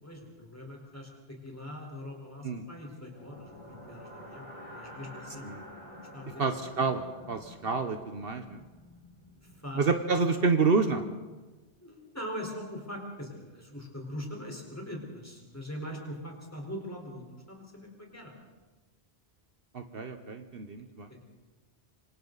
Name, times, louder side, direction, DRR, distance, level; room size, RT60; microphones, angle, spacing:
voice 1, 0.0-5.5 6.1-6.5 9.4-9.9 11.8-18.3 21.1-21.2, equal, 15° left, 0 dB, 4.3 m, -42 dB
sound 1, 3.1-11.1, left 1 dB, 30° left, 4.8 m, -49 dB
voice 2, 6.4-7.0 7.3-8.6 9.8-11.0 19.7-21.1, right 4 dB, 60° right, 7 dB, 1.2 m, -28 dB
26.5 x 25.5 x 4.0 m, 1.2 s
omnidirectional pair, 1.1 m